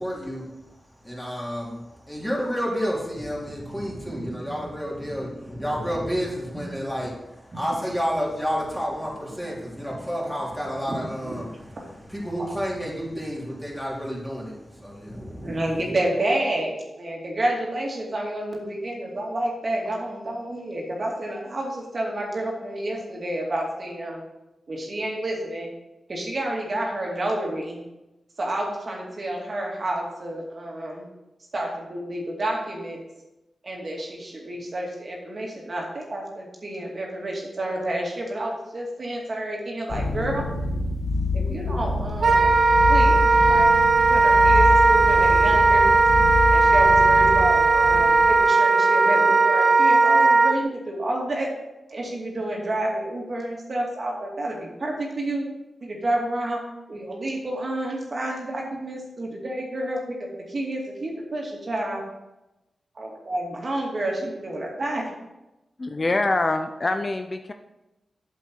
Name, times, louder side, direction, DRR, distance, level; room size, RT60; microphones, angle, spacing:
voice 1, 0.0-15.9, equal, 5° left, -5 dB, 3.5 m, -30 dB
voice 2, 10.9-11.4 15.4-24.2 24.7-25.7 26.1-27.8 28.4-31.0 31.5-33.0 33.6-40.5 41.3-42.5 42.9-43.2 43.5-45.9 46.5-51.5 51.9-55.5 55.8-56.6 56.9-62.0 63.0-65.1, right 1 dB, 50° right, -1 dB, 2.4 m, -29 dB
sound 1, 39.9-48.4, left 2 dB, 85° left, 2.1 m, -26 dB
Wind instrument woodwind instrument, 42.2-50.6, right 3 dB, 70° right, 0.7 m, -17 dB
voice 3, 65.8-67.5, left 2 dB, 40° left, 7 dB, 0.6 m, -25 dB
8.3 x 7.2 x 4.6 m, 0.97 s
cardioid pair, 70°, 0 cm